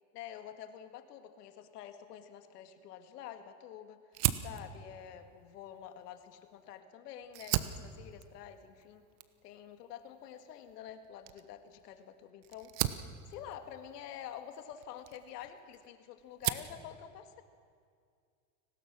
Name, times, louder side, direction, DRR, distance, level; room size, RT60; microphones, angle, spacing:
voice 1, 0.1-4.0 4.4-9.0 9.4-12.7 13.0-17.4, left 10 dB, 90° left, 8 dB, 2.1 m, -48 dB
Fire, 4.1-6.8 7.2-15.9 16.2-16.8, right 14 dB, 55° right, 1.2 m, -38 dB
30.0 x 19.5 x 6.2 m, 2.2 s
supercardioid pair, 120°, 46 cm